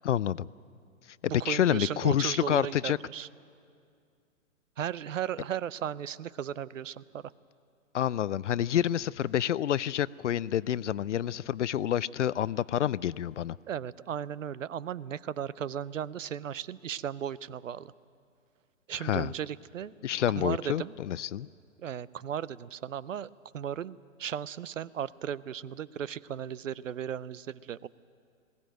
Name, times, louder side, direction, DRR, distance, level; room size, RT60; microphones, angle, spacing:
voice 1, 0.0-0.5 1.5-3.0 7.9-13.6 19.0-19.3 20.0-21.5, left 10 dB, 60° left, 21 dB, 0.5 m, -28 dB
voice 2, 1.4-3.3 4.8-7.3 13.7-17.9 18.9-19.9 20.4-21.0 21.8-27.9, right 9 dB, 70° right, 21 dB, 0.7 m, -36 dB
20.5 x 17.0 x 9.1 m, 2.3 s
figure-of-eight pair, 120°, 40 cm